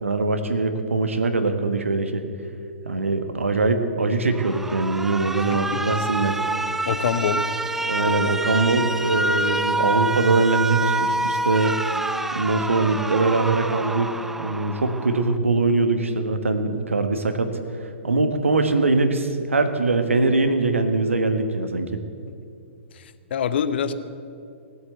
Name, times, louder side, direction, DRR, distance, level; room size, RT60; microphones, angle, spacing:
voice 1, 0.0-2.2 2.8-6.4 7.8-11.8 12.3-14.1 14.4-17.5 18.0-22.0, right 3 dB, 80° right, 8 dB, 1.4 m, -22 dB
Alarm, 4.3-15.4, right 2 dB, 5° right, 0.4 m, -27 dB
voice 2, 5.5-6.0 6.8-7.5 23.3-23.9, left 7 dB, 55° left, 12 dB, 0.9 m, -25 dB
17.0 x 8.2 x 7.9 m, 2.5 s
figure-of-eight pair, 120°, 7 cm